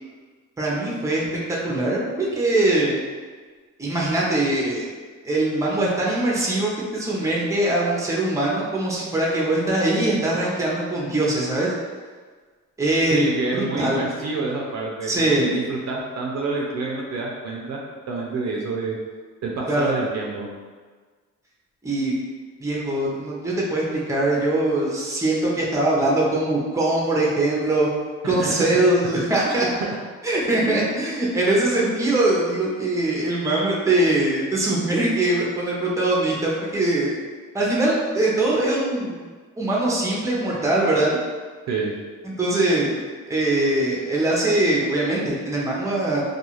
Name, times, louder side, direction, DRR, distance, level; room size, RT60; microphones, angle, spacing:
voice 1, 0.6-2.9 3.8-4.9 5.2-11.7 12.8-13.2 13.5-14.0 15.0-15.5 19.7-19.9 21.8-22.1 22.6-27.9 28.2-29.7 30.2-37.2 37.5-39.2 39.6-41.2 42.2-43.0 43.3-46.2, right 2 dB, 10° right, -4 dB, 0.7 m, -22 dB
voice 2, 13.1-17.8 18.1-19.0 19.4-20.5 28.2-28.7 29.5-29.6 29.8-29.9 30.7-30.8 41.7-41.9, right 3 dB, 60° right, -2 dB, 0.5 m, -28 dB
2.4 x 2.3 x 3.0 m, 1.5 s
cardioid pair, 90°, 30 cm